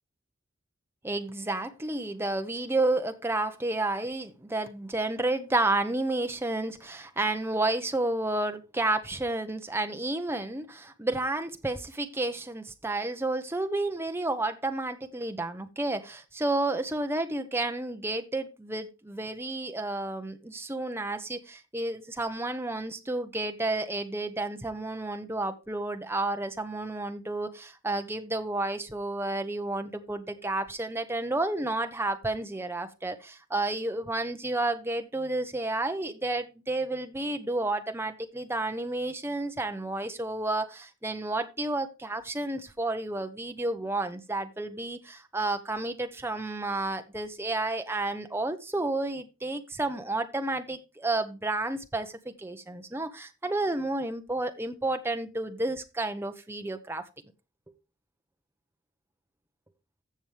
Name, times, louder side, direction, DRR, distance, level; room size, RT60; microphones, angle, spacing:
voice 1, 1.0-57.0, right 2 dB, 10° right, 0.9 m, -31 dB
15.0 x 6.1 x 3.4 m
head